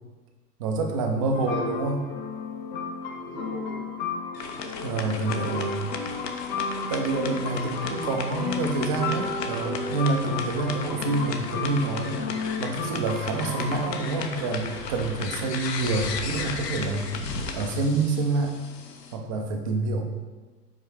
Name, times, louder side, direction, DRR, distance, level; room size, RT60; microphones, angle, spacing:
voice 1, 0.6-2.0 4.8-5.8 6.9-12.2 12.6-17.1 17.5-18.5 19.1-20.0, right 3 dB, 25° right, 3 dB, 0.4 m, -27 dB
sound 1, 1.3-13.9, left 4 dB, 30° left, 0.6 m, -33 dB
voice 2, 1.4-1.8 2.2-2.3 3.0-4.0 5.3-5.7 7.5-8.1, right 2 dB, 85° right, -1 dB, 1.5 m, -43 dB
sound 2, 4.3-19.2, left 5 dB, 75° left, 0.9 m, -36 dB
5.6 x 4.5 x 4.7 m, 1.3 s
hypercardioid pair, 115°, 49 cm